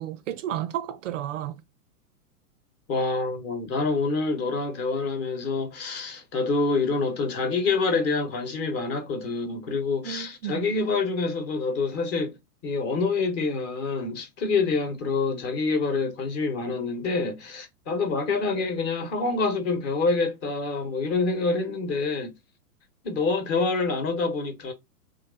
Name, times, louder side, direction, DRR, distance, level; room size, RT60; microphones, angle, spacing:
voice 1, 0.0-1.6 10.0-10.7, right 11 dB, 55° right, 0.5 m, -32 dB
voice 2, 2.9-12.3 12.6-22.3 23.0-24.7, left 3 dB, 30° left, 1.0 m, -26 dB
3.1 x 2.5 x 3.7 m
hypercardioid pair, 110°, 46 cm